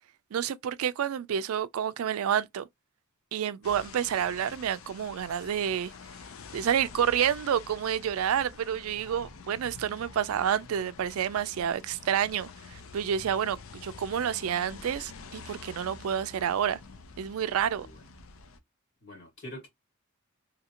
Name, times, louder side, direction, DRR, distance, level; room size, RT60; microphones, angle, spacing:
voice 1, 0.3-2.7 3.3-5.9 6.5-16.8 17.2-17.9, right 9 dB, 85° right, 0.4 m, -29 dB
sound 1, 3.6-18.6, left 4 dB, 75° left, 0.5 m, -47 dB
voice 2, 17.6-18.0 19.0-19.7, left 1 dB, 55° left, 1.7 m, -45 dB
2.8 x 2.5 x 2.8 m
head